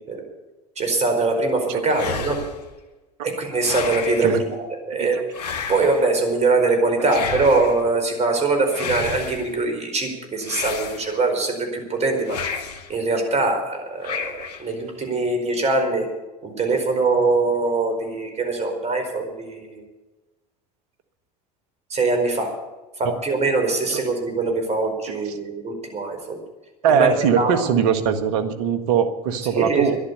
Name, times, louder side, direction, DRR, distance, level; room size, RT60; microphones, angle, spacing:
voice 1, 0.8-2.4 3.2-5.2 5.7-12.4 12.9-16.1 16.4-19.8 21.9-22.6 23.0-26.4 26.9-27.7 29.5-29.9, right 3 dB, 35° right, 5 dB, 4.7 m, -22 dB
voice 2, 1.7-2.0 4.2-4.4 5.0-5.1 7.0-7.3 23.9-24.0 26.8-30.0, right 7 dB, 70° right, 9 dB, 1.6 m, -21 dB
sound 1, 1.9-2.7 3.6-4.4 5.3-6.1 7.1-7.8 8.7-9.5 10.4-11.3 12.2-12.9 14.0-14.7, left 6 dB, 80° left, 1.7 m, -31 dB
11.5 x 11.5 x 8.2 m, 1.1 s
hypercardioid pair, 80°, 20 cm